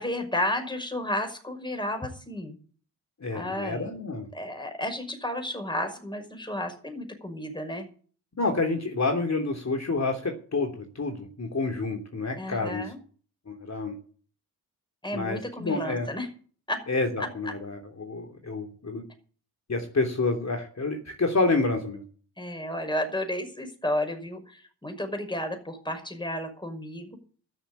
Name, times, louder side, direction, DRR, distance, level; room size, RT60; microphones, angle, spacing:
voice 1, 0.0-2.6 3.3-3.9 4.3-7.9 12.4-13.0 15.0-16.3 16.7-16.8 22.4-27.2, left 1 dB, 10° left, 5 dB, 5.8 m, -32 dB
voice 2, 3.2-4.3 8.4-12.9 13.5-13.9 15.1-16.1 16.9-19.0 19.7-22.0, left 3 dB, 40° left, 2 dB, 3.1 m, -28 dB
12.5 x 7.3 x 8.9 m, 0.43 s
cardioid pair, 55°, 40 cm